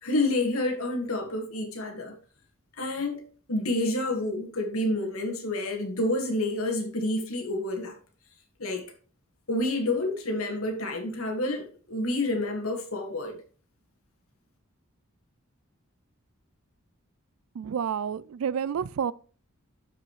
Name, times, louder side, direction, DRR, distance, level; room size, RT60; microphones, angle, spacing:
voice 1, 0.0-2.2 2.8-3.2 3.5-8.0 8.6-8.9 9.5-13.4, left 2 dB, 85° left, 1.9 m, -29 dB
voice 2, 17.6-19.1, right 7 dB, 70° right, 0.4 m, -29 dB
12.5 x 5.0 x 3.2 m
head